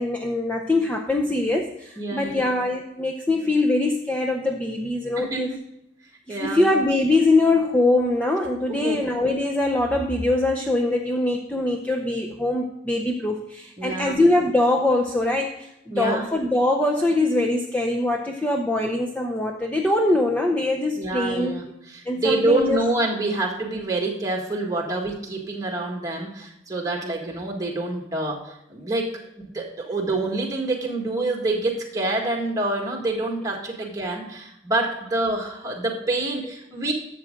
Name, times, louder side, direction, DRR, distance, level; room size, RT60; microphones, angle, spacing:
voice 1, 0.0-5.5 6.3-21.5 22.1-22.8, left 2 dB, 10° left, 0 dB, 0.6 m, -23 dB
voice 2, 2.0-2.4 5.2-5.6 6.3-6.7 8.7-9.0 13.8-14.2 15.9-16.2 21.0-29.2 29.5-36.9, right 2 dB, 20° right, 0 dB, 1.8 m, -27 dB
12.0 x 7.6 x 3.7 m, 0.81 s
head